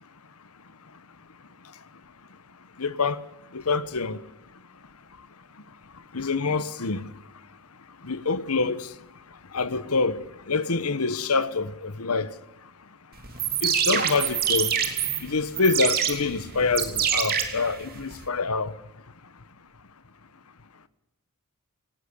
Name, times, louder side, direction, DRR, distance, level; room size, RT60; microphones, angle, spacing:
voice 1, 2.8-3.2 3.5-4.2 6.1-7.1 8.0-8.9 9.5-10.2 10.5-12.3 13.6-14.7 15.2-18.7, left 4 dB, 80° left, 1.2 m, -26 dB
sound 1, 13.2-18.2, right 8 dB, 45° right, 3.1 m, -26 dB
19.0 x 18.5 x 9.7 m
head